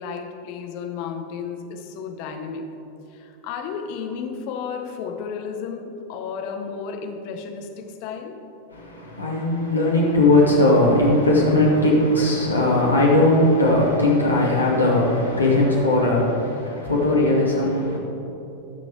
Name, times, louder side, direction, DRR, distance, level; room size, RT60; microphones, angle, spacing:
voice 1, 0.0-2.6 3.1-8.4, left 6 dB, 45° left, 4 dB, 1.2 m, -33 dB
voice 2, 8.7-18.0, left 1 dB, 85° left, -4 dB, 2.4 m, -19 dB
19.5 x 6.7 x 3.5 m, 2.9 s
figure-of-eight pair, 90°, 0 cm